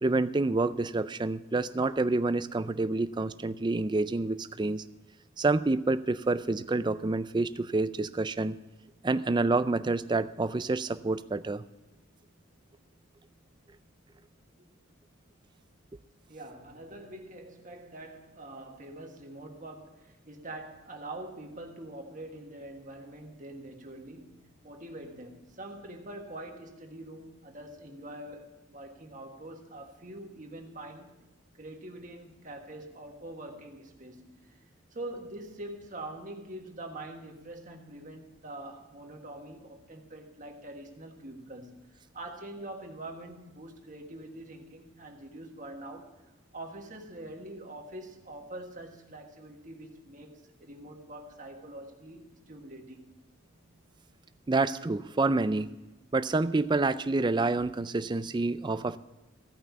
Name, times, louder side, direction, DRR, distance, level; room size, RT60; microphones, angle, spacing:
voice 1, 0.0-4.8 5.4-8.6 9.0-11.6 54.5-55.7 56.1-59.0, right 3 dB, 20° right, 0.3 m, -28 dB
voice 2, 16.3-31.1 31.6-34.6 34.9-46.1 46.5-53.2, right 1 dB, 35° right, 1.5 m, -44 dB
15.5 x 5.7 x 8.0 m
head